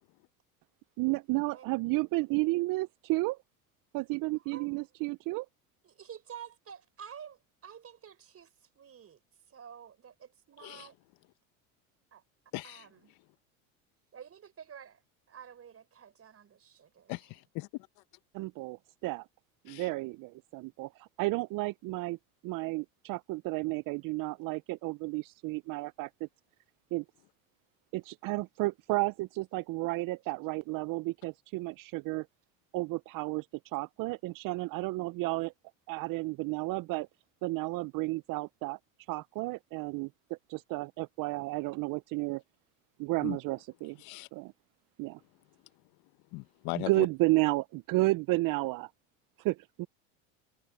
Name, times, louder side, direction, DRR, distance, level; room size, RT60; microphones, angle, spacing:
voice 1, 1.0-3.4 3.9-5.5 18.3-19.3 19.6-22.2 22.4-26.3 26.9-27.0 27.9-32.3 32.7-35.5 35.9-37.1 37.4-38.8 39.1-42.4 43.0-44.0 44.3-44.5 45.0-45.2 46.7-48.9 49.4-49.9, right 21 dB, 50° right, 0.8 m, -32 dB
voice 2, 5.8-9.2 9.5-10.9 12.1-12.2 12.6-13.1 14.1-15.0 15.3-17.1, right 8 dB, 35° right, 6.0 m, -50 dB
voice 3, 12.5-12.9 17.1-17.7 19.7-19.9 43.2-43.4 44.0-44.3 46.3-47.1, left 23 dB, 60° left, 1.5 m, -38 dB
hypercardioid pair, 90°, 41 cm